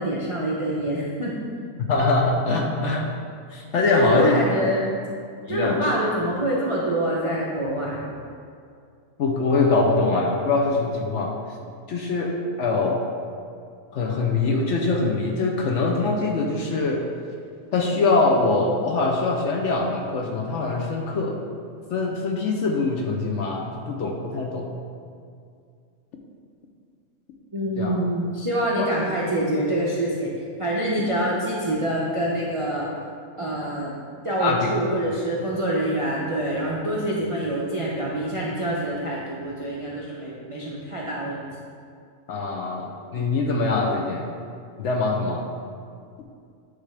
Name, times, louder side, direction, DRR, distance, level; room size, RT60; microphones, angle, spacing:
voice 1, 0.0-1.3 1.6-1.7 3.9-4.9 5.5-8.0 27.5-30.3 30.6-32.9 33.4-33.9 34.2-41.5, right 1 dB, 45° right, -5 dB, 0.4 m, -25 dB
voice 2, 1.9-3.1 3.5-4.4 5.5-5.8 9.2-11.3 11.9-13.0 13.9-17.0 17.7-21.4 21.9-24.7 27.8-28.0 28.8-28.9 31.3-31.4 34.4-34.7 42.3-44.3 44.8-45.4, left 3 dB, 65° left, 0 dB, 0.8 m, -23 dB
9.8 x 3.5 x 3.3 m, 2.3 s
omnidirectional pair, 1.6 m